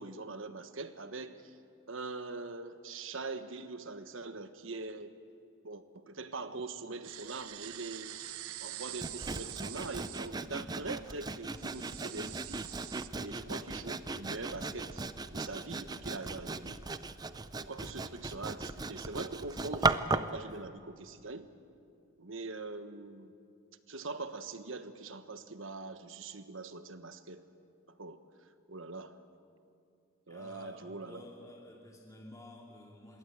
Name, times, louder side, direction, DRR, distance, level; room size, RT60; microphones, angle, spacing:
voice 1, 0.0-1.5 1.9-5.1 5.6-8.2 8.6-12.7 13.1-16.8 17.6-21.5 22.2-23.3 23.9-27.4 27.9-28.2 28.7-29.2 30.3-31.2, right 3 dB, 65° right, 10 dB, 1.3 m, -43 dB
sound 1, 7.0-13.1, right 14 dB, 85° right, 0.8 m, -46 dB
Sawing, 9.0-20.4, right 3 dB, 20° right, 0.5 m, -37 dB
voice 2, 30.3-33.2, left 1 dB, 15° left, -1 dB, 2.4 m, -51 dB
26.5 x 22.0 x 8.4 m, 2.5 s
head